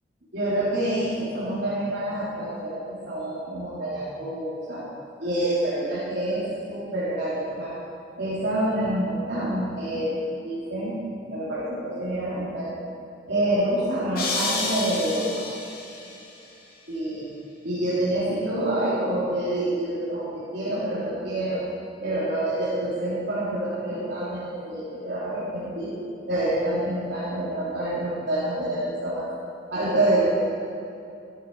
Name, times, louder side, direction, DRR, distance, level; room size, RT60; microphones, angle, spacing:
voice 1, 0.3-4.8 5.2-7.7 8.2-10.1 10.4-11.0 11.3-12.8 13.3-15.4 16.9-17.3 17.6-21.7 22.0-26.0 26.3-29.3 29.7-30.2, right 1 dB, 65° right, -10 dB, 3.5 m, -27 dB
sound 1, 14.2-16.2, left 3 dB, 55° left, 2.3 m, -30 dB
14.5 x 13.0 x 4.9 m, 2.6 s
head